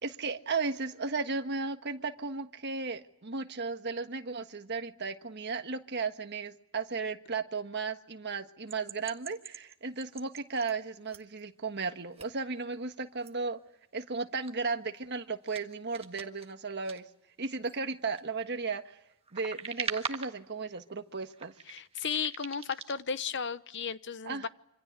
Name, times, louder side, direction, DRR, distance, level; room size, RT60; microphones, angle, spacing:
voice 1, 0.0-13.6 13.9-17.0 17.4-19.0 19.3-21.5 24.2-24.5, right 4 dB, 50° right, 7 dB, 1.5 m, -35 dB
sound 1, 8.7-10.7 11.1-11.4 12.1-12.3 12.6-12.7 13.2-13.3 14.4-14.5 15.0-15.2 15.4-17.0 17.7-18.2 18.9-20.4 20.7-20.9 21.3-23.0, right 5 dB, 25° right, 1.5 m, -43 dB
voice 2, 21.7-24.5, left 6 dB, 55° left, 14 dB, 0.9 m, -34 dB
27.0 x 25.5 x 8.1 m, 0.84 s
head